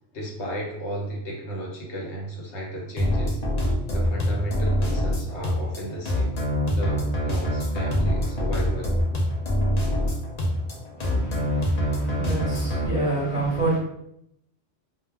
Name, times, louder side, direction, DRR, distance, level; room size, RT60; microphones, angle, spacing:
voice 1, 0.1-3.4 3.9-6.4 6.7-9.0, right 1 dB, 80° left, 1.0 m, -34 dB
sound 1, 3.0-12.9, equal, 55° left, 0.5 m, -25 dB
voice 2, 11.0-13.8, right 2 dB, 35° left, 0.9 m, -28 dB
2.2 x 2.0 x 3.3 m
omnidirectional pair, 1.2 m